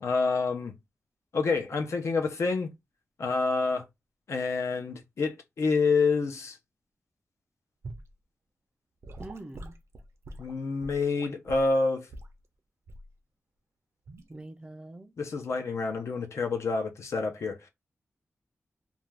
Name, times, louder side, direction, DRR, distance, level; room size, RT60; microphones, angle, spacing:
voice 1, 0.0-0.7 1.3-2.7 3.2-3.9 4.3-6.6 10.4-12.1 15.2-17.6, left 4 dB, 70° left, 0.6 m, -28 dB
Gurgling / Sink (filling or washing) / Liquid, 7.8-8.1 9.0-11.7 12.1-12.4 12.9-13.1 14.0-14.3, right 1 dB, 65° right, 0.6 m, -44 dB
voice 2, 9.2-9.7 14.3-15.1, right 2 dB, 20° right, 0.4 m, -44 dB
2.5 x 2.2 x 3.2 m
wide cardioid pair, 155°, 5 cm